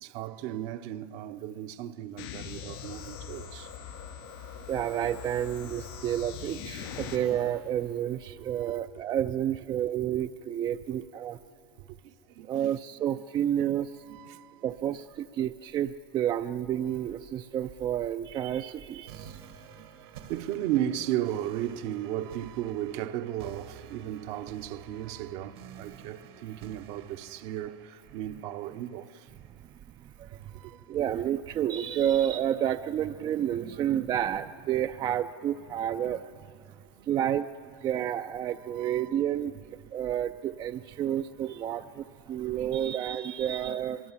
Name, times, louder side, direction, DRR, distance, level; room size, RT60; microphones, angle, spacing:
voice 1, 0.0-3.7 5.9-6.1 8.3-8.8 12.4-12.8 13.1-13.5 14.0-14.7 19.2-19.4 19.8-19.9 20.2-29.1 30.5-30.8 36.3-36.4 37.0-37.1 38.6-39.2 42.6-43.0 43.4-43.9, right 12 dB, 60° right, 0.9 m, -36 dB
sound 1, 2.2-7.2, left 8 dB, 70° left, 4.0 m, -42 dB
voice 2, 4.7-11.4 12.5-13.9 14.6-19.3 30.9-36.2 37.1-37.5 37.8-39.5 39.9-44.0, right 10 dB, 35° right, 0.5 m, -30 dB
sound 2, 19.1-30.0, right 8 dB, 85° right, 1.9 m, -50 dB
24.0 x 23.0 x 7.3 m
supercardioid pair, 110°, 12 cm